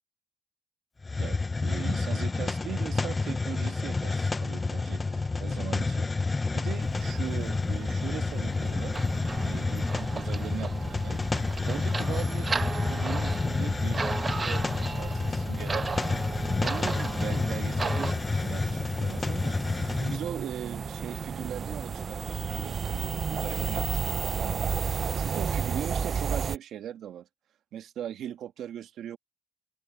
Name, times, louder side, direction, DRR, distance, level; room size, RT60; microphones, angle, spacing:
Hiss, 1.0-20.3, left 3 dB, 25° left, 0.4 m, -29 dB
voice 1, 1.2-16.0 16.6-27.3 27.7-29.2, right 10 dB, 80° right, 1.4 m, -40 dB
sound 1, 6.8-26.6, right 6 dB, 50° right, 0.4 m, -35 dB
sound 2, 8.9-18.1, right 4 dB, 35° right, 1.0 m, -36 dB
open air
cardioid pair, 80°, 0 cm